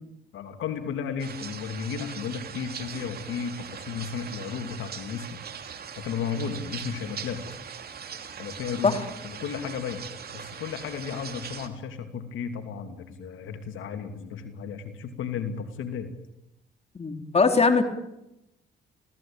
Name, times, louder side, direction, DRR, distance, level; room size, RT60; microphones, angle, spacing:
voice 1, 0.3-5.4 6.0-7.4 8.4-8.9 9.2-10.0 10.3-16.1, left 6 dB, 80° left, 7 dB, 2.8 m, -34 dB
sound 1, 1.2-11.7, right 7 dB, 50° right, 3.0 m, -40 dB
voice 2, 17.0-17.8, left 4 dB, 30° left, 6 dB, 3.5 m, -21 dB
27.5 x 17.5 x 8.9 m, 0.88 s
cardioid pair, 90°, 20 cm